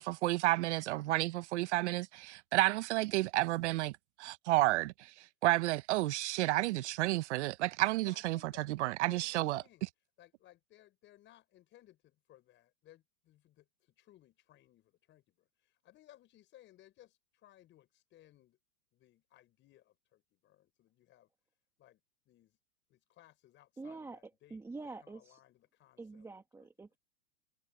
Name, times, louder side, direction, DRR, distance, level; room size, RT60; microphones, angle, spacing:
voice 1, 0.0-3.9 4.2-5.1 5.4-9.6, right 18 dB, 60° right, 1.1 m, -31 dB
voice 2, 8.0-9.9 10.2-18.6 18.9-21.3 21.8-22.0 22.3-22.6 22.9-24.6 25.0-26.3 26.6-26.7, left 14 dB, 30° left, 7.3 m, -62 dB
voice 3, 23.8-24.2 24.5-25.4 26.0-27.0, right 3 dB, 5° right, 1.6 m, -46 dB
supercardioid pair, 150°, 40 cm